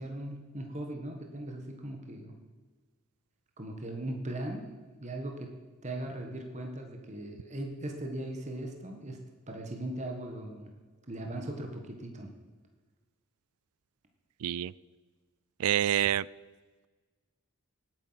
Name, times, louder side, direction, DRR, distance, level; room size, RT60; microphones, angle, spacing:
voice 1, 0.0-2.3 3.6-4.7 5.0-5.5 5.8-9.2 9.5-10.7 11.1-12.3, right 1 dB, 30° right, 3 dB, 1.6 m, -38 dB
voice 2, 14.4-14.7 15.6-16.3, right 11 dB, 85° right, 22 dB, 0.4 m, -27 dB
18.5 x 9.2 x 5.9 m, 1.3 s
head